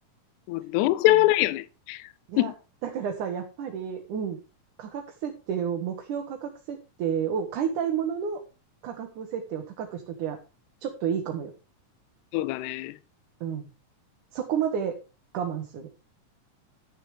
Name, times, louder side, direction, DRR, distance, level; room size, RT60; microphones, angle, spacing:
voice 1, 0.5-2.0 2.4-2.5 12.3-13.0, left 16 dB, 75° left, 2.0 m, -23 dB
voice 2, 2.8-4.4 4.8-8.4 8.8-10.4 10.8-11.5 13.4-13.7 14.3-15.0 15.3-15.9, right 8 dB, 70° right, 2.9 m, -31 dB
12.5 x 7.0 x 4.8 m
omnidirectional pair, 3.9 m